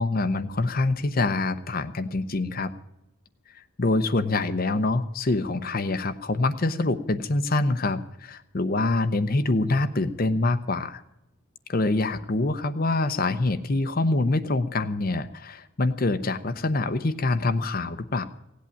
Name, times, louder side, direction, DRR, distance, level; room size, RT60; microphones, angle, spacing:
voice 1, 0.0-2.7 3.5-11.0 11.7-18.2, left 2 dB, 45° left, 10 dB, 0.7 m, -25 dB
17.0 x 8.5 x 8.7 m, 0.86 s
head